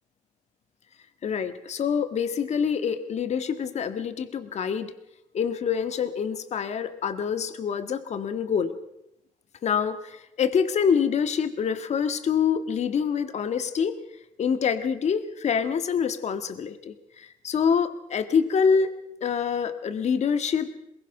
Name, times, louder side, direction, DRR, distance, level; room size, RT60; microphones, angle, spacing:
voice 1, 1.2-4.9 5.3-8.7 9.6-13.9 14.4-18.9 19.2-20.7, left 6 dB, 50° left, 10 dB, 1.7 m, -26 dB
22.0 x 21.5 x 5.9 m, 0.83 s
cardioid pair, 110°, 14 cm